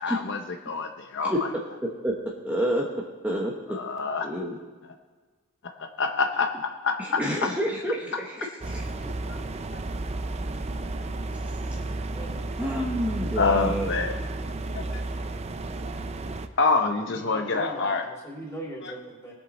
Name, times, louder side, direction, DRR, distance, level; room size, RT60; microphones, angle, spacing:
voice 1, 0.0-0.4 0.6-1.3 3.8-4.3 5.8-6.5 6.8-6.9 13.4-14.1 14.7-15.0 16.6-18.0, left 4 dB, 60° left, 5 dB, 0.7 m, -26 dB
voice 2, 2.4-2.9 3.2-3.5 4.2-4.6 7.0-8.8 12.6-13.9, equal, 5° right, -3 dB, 1.1 m, -28 dB
sound 1, 8.6-16.5, right 2 dB, 30° right, 0.5 m, -32 dB
voice 3, 12.1-13.2 17.0-19.3, right 1 dB, 15° left, -5 dB, 3.5 m, -40 dB
19.5 x 7.3 x 4.2 m, 1.4 s
head